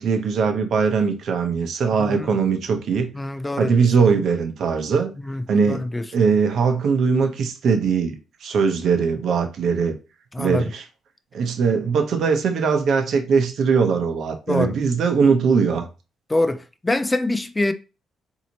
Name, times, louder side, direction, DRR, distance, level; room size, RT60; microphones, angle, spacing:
voice 1, 0.0-3.1 3.6-5.1 5.5-5.9 6.1-8.1 8.4-9.9 10.4-10.8 11.3-15.9, right 5 dB, 65° right, 0.9 m, -20 dB
voice 2, 2.0-2.4 3.1-3.8 5.2-6.0 10.3-10.7 14.5-14.7 16.3-17.7, left 2 dB, 15° left, 0.4 m, -25 dB
4.0 x 2.8 x 2.9 m
cardioid pair, 90°, 0 cm